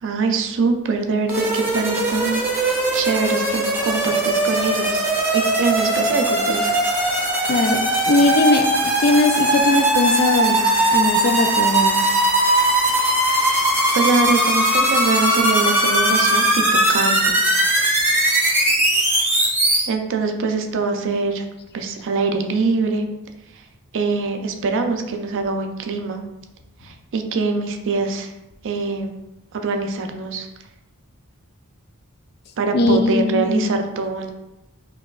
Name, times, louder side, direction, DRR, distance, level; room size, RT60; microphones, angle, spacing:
voice 1, 0.0-5.0 5.3-6.8 13.9-16.6 16.9-17.4 19.9-21.4 21.7-23.1 23.9-26.2 26.8-28.3 28.6-29.1 29.5-30.5 32.6-34.3, right 4 dB, 60° right, 5 dB, 0.4 m, -23 dB
sound 1, 1.3-19.8, right 1 dB, 10° right, 0.8 m, -19 dB
voice 2, 7.5-10.6 10.9-12.1 32.7-33.9, left 2 dB, 45° left, 5 dB, 0.4 m, -19 dB
4.5 x 2.9 x 2.4 m, 0.95 s
head